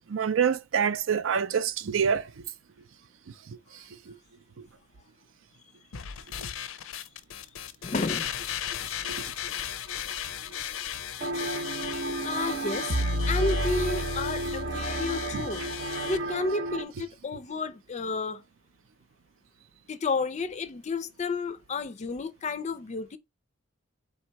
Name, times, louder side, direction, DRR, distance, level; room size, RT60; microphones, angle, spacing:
voice 1, 0.1-2.4 3.5-4.2 4.6-4.7 6.4-6.5 9.0-9.3 15.3-15.5, right 7 dB, 75° right, 0.4 m, -28 dB
sound 1, 5.9-16.2, left 10 dB, 90° left, 0.5 m, -36 dB
voice 2, 7.8-8.3 12.2-13.0 13.3-15.6 16.0-18.4 19.9-23.2, left 3 dB, 35° left, 0.4 m, -31 dB
sound 2, 11.2-16.9, right 2 dB, 50° right, 0.8 m, -33 dB
sound 3, 12.9-16.0, equal, 90° right, 1.0 m, -31 dB
3.7 x 2.9 x 4.5 m
head